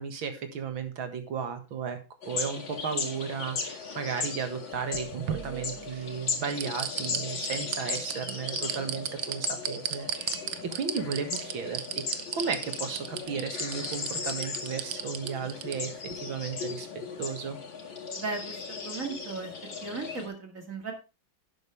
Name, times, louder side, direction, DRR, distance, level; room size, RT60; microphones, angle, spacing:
voice 1, 0.0-2.0 2.3-16.9 17.2-17.6, right 6 dB, 90° right, 7 dB, 2.5 m, -35 dB
sound 1, 2.2-20.3, left 5 dB, 65° left, 2.8 m, -37 dB
sound 2, 4.7-6.0 6.5-15.8 16.1-16.2, right 10 dB, 70° right, 1.6 m, -34 dB
voice 2, 18.2-19.5 19.8-20.9, right 4 dB, 40° right, 4 dB, 2.4 m, -36 dB
11.5 x 9.3 x 3.3 m, 0.30 s
omnidirectional pair, 2.1 m